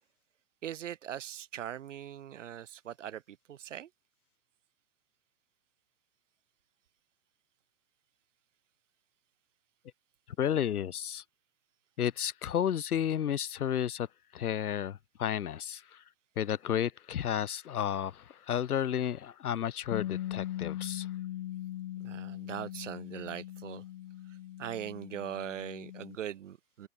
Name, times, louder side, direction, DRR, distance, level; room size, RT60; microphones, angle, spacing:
voice 1, 0.6-3.9 22.0-23.8 24.3-26.9, right 10 dB, 55° right, 2.7 m, -41 dB
voice 2, 10.4-11.2 12.0-14.1 14.3-15.8 16.4-21.1, left 9 dB, 85° left, 2.3 m, -32 dB
Bass guitar, 19.9-26.2, left 13 dB, 40° left, 4.2 m, -40 dB
hypercardioid pair, 180°, 43 cm